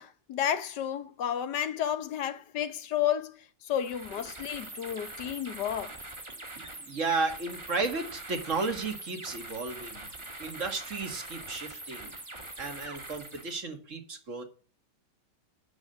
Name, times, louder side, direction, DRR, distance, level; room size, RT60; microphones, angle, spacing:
voice 1, 0.0-5.9, left 10 dB, 70° left, 1.6 m, -32 dB
sound 1, 3.7-13.6, right 2 dB, 15° right, 1.6 m, -43 dB
voice 2, 6.6-10.1 10.4-12.1 12.6-14.4, right 3 dB, 45° right, 2.4 m, -33 dB
9.8 x 7.3 x 8.0 m
omnidirectional pair, 1.9 m